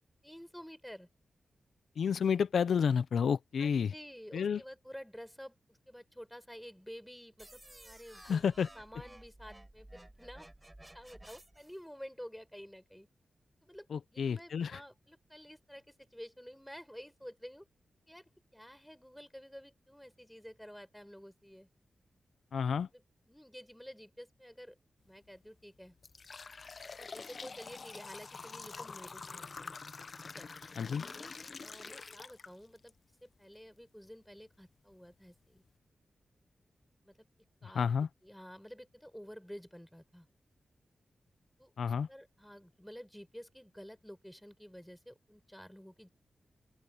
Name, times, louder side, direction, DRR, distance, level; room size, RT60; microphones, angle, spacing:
voice 1, 0.2-1.1 3.6-8.4 8.7-10.5 10.9-13.1 13.6-17.7 18.1-21.7 22.9-24.8 25.0-25.9 27.0-29.8 30.2-30.5 31.0-32.9 33.2-35.6 37.0-37.2 37.6-37.9 38.2-40.3 41.6-46.1, equal, 5° left, 5.9 m, -51 dB
voice 2, 2.0-3.9 4.3-4.6 8.2-8.7 13.9-14.8 22.5-22.9 30.8-31.0 37.6-38.1 41.8-42.1, left 7 dB, 80° left, 0.7 m, -30 dB
sound 1, 7.4-11.8, right 1 dB, 15° right, 4.4 m, -54 dB
sound 2, 25.1-25.3 25.8-32.9 33.4-33.5 34.3-34.4 34.9-35.0 35.5-35.7, left 4 dB, 55° left, 1.0 m, -46 dB
open air
cardioid pair, 50°, 0 cm